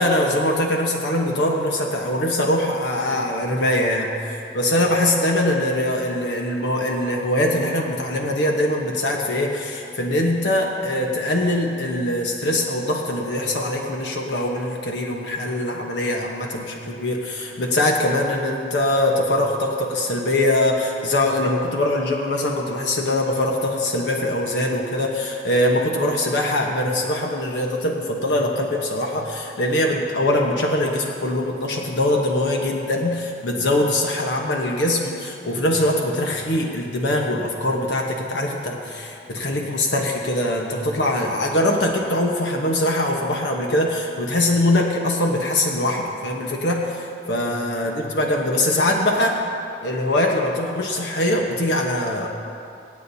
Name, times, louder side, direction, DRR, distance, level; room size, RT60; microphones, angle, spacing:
voice 1, 0.0-4.1 4.5-49.4 49.8-52.3, left 1 dB, 80° left, 0 dB, 1.1 m, -22 dB
25.5 x 8.6 x 2.8 m, 2.6 s
head